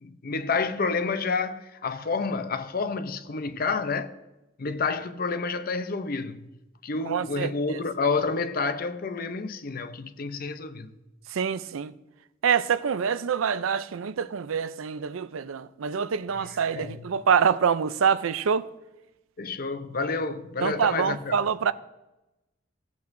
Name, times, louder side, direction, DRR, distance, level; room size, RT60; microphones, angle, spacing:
voice 1, 0.0-4.1 4.6-6.5 6.8-10.9 16.4-17.1 19.4-21.4, left 4 dB, 45° left, 0.6 m, -29 dB
voice 2, 7.1-7.5 11.3-11.9 12.4-18.7 20.6-21.7, right 7 dB, 90° right, 0.5 m, -25 dB
16.5 x 8.3 x 2.6 m
head